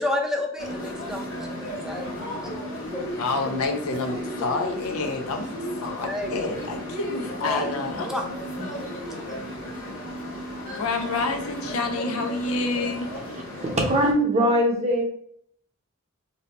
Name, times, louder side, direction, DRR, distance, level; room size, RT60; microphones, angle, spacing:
voice 1, 0.0-1.5 1.8-2.1 2.9-3.2 3.5-3.6 6.0-6.3 7.4-8.2 8.6-8.8 9.4-9.6, left 1 dB, 5° right, 1 dB, 0.4 m, -30 dB
sound 1, 0.6-14.1, equal, 65° left, 1.3 m, -34 dB
voice 2, 3.2-5.5 5.8-8.1 10.8-13.1, left 3 dB, 80° left, 5 dB, 0.4 m, -28 dB
voice 3, 13.5-15.0, equal, 30° right, -1 dB, 0.7 m, -21 dB
2.6 x 2.1 x 4.0 m, 0.66 s
head